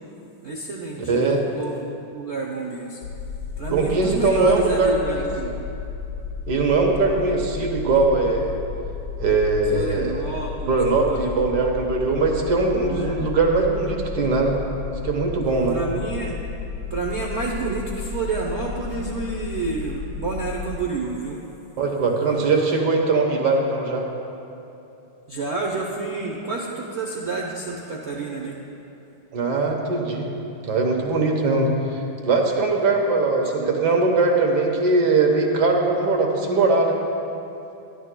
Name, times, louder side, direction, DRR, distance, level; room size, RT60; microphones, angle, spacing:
voice 1, 0.4-1.8 2.1-3.0 3.6-5.6 9.7-11.5 12.9-13.2 15.7-16.4 16.9-21.4 25.3-28.6 33.6-33.8, right 3 dB, 75° right, -2 dB, 0.6 m, -29 dB
voice 2, 1.1-1.4 3.7-5.2 6.5-8.5 9.2-10.3 10.7-14.6 15.0-15.8 21.8-24.0 29.3-30.3 30.6-37.0, right 3 dB, 60° right, 1 dB, 1.5 m, -21 dB
sound 1, 3.0-20.8, left 5 dB, 75° left, 1.2 m, -33 dB
13.5 x 11.0 x 2.2 m, 2.8 s
omnidirectional pair, 2.3 m